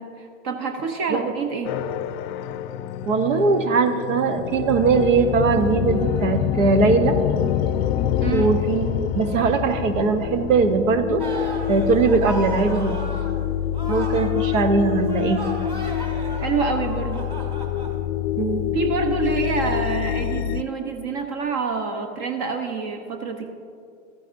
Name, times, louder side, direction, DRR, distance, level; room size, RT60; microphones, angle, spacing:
voice 1, 0.0-1.8 8.2-8.5 16.4-17.3 18.7-23.5, right 4 dB, 45° right, 5 dB, 0.9 m, -27 dB
sound 1, 1.6-20.6, left 11 dB, 55° left, 0.5 m, -26 dB
voice 2, 3.0-7.2 8.3-11.2 11.7-13.0 13.9-15.4 18.4-18.6, right 4 dB, 75° right, 8 dB, 1.0 m, -20 dB
sound 2, 11.2-13.4 13.7-18.0, right 2 dB, 15° right, 1.9 m, -35 dB
13.5 x 9.8 x 2.6 m, 2.4 s
hypercardioid pair, 110°, 39 cm